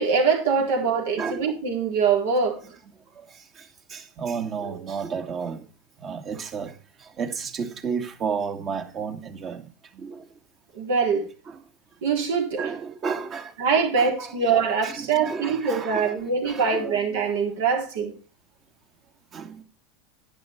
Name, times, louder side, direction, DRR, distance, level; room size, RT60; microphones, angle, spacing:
voice 1, 0.0-2.6 10.7-11.2 12.0-12.6 13.6-18.1, right 5 dB, 75° right, 4.0 m, -23 dB
voice 2, 3.1-5.7 6.0-10.3 11.5-11.6 12.6-13.5 14.0-17.3 19.3-19.6, right 6 dB, 40° right, 2.2 m, -33 dB
10.5 x 10.5 x 4.6 m
hypercardioid pair, 90°, 0 cm